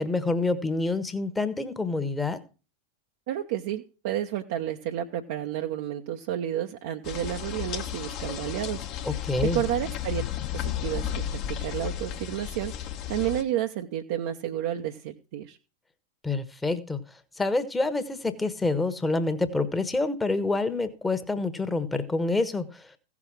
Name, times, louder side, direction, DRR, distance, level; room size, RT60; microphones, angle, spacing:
voice 1, 0.0-2.4 9.0-9.6 16.2-17.0 17.4-22.8, left 3 dB, 10° left, 11 dB, 1.2 m, -27 dB
voice 2, 3.3-8.9 9.4-10.2 10.6-11.1 11.6-12.7 13.1-15.6, right 12 dB, 50° right, 2 dB, 0.8 m, -30 dB
sound 1, 7.0-13.4, left 10 dB, 40° left, 1.3 m, -33 dB
15.5 x 6.1 x 6.1 m, 0.34 s
figure-of-eight pair, 90°, 0 cm